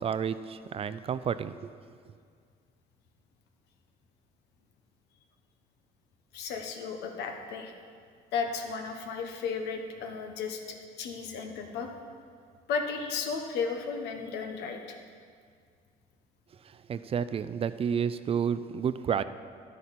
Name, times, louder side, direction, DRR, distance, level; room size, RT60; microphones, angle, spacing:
voice 1, 0.0-1.7 16.6-19.2, right 7 dB, 35° right, 14 dB, 0.4 m, -30 dB
voice 2, 6.3-7.7 8.3-11.9 12.7-15.0, left 5 dB, 85° left, 4 dB, 1.2 m, -34 dB
11.0 x 10.0 x 4.1 m, 2.1 s
cardioid pair, 110°, 17 cm